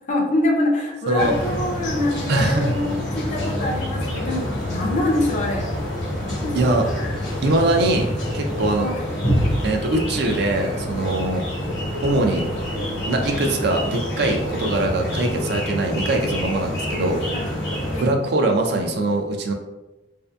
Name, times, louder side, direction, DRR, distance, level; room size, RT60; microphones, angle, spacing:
voice 1, 0.1-5.7 6.2-6.8 8.8-9.1 17.3-17.5 17.9-18.1, left 1 dB, 40° left, 0 dB, 0.4 m, -25 dB
sound 1, 1.2-18.0, equal, 75° left, 1.0 m, -27 dB
voice 2, 2.3-2.7 6.5-6.9 7.4-8.1 8.3-8.9 9.6-11.4 12.0-12.4 13.1-17.2 18.0-19.5, right 2 dB, 60° right, 3 dB, 0.4 m, -22 dB
2.6 x 2.5 x 2.2 m, 1.0 s
head